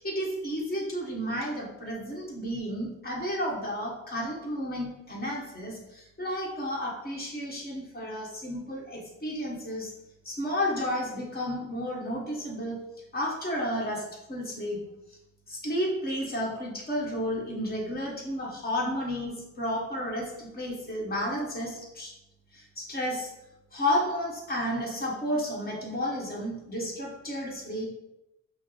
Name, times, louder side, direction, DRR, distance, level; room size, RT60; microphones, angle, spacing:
voice 1, 0.0-9.9 10.2-12.8 13.1-14.0 14.3-14.8 15.5-22.1 22.5-23.3 23.7-27.9, equal, 30° left, -3 dB, 1.3 m, -32 dB
5.5 x 2.0 x 3.1 m, 0.91 s
cardioid pair, 90°, 30 cm